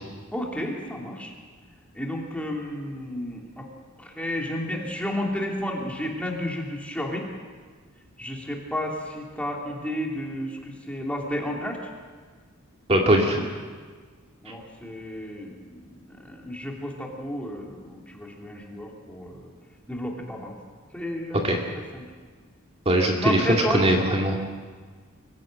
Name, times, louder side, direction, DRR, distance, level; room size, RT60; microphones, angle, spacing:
voice 1, 0.3-1.3 1.9-3.7 4.0-7.3 8.2-11.9 14.4-19.5 19.9-20.6 20.9-22.1 23.2-24.0, equal, 5° left, -1 dB, 3.0 m, -32 dB
voice 2, 12.9-13.4 21.4-21.6 22.9-24.4, right 1 dB, 30° right, 0 dB, 2.2 m, -21 dB
24.0 x 16.0 x 7.7 m, 1.5 s
head